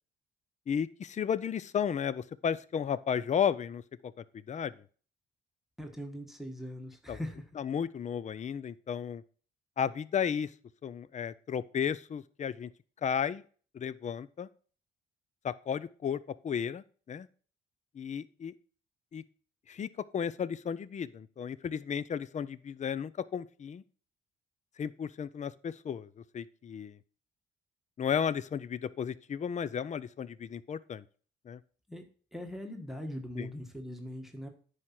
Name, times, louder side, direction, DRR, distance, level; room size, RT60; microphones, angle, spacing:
voice 1, 0.7-4.1 4.5-4.7 7.1-7.2 7.6-9.2 9.8-10.5 10.8-12.7 13.0-13.4 13.7-14.5 15.4-17.3 17.9-18.5 19.1-19.2 19.7-19.9 20.1-23.8 24.8-27.0 28.0-31.0 31.5-31.6 33.4-33.5, left 7 dB, 35° left, 17 dB, 0.5 m, -33 dB
voice 2, 5.8-7.5 31.9-32.0 32.3-34.5, equal, ahead, 4 dB, 1.5 m, -41 dB
9.7 x 4.9 x 5.9 m, 0.42 s
cardioid pair, 90°, 20 cm